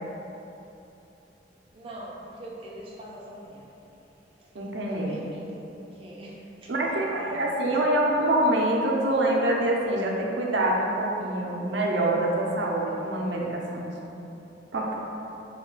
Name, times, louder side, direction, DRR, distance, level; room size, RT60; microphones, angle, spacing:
voice 1, 1.7-3.7 4.4-4.5 4.9-8.3, right 1 dB, 30° right, -4 dB, 0.4 m, -43 dB
voice 2, 4.5-5.2 6.7-13.9 14.7-15.0, right 1 dB, 80° right, -2 dB, 0.6 m, -25 dB
5.1 x 2.4 x 3.7 m, 3.0 s
head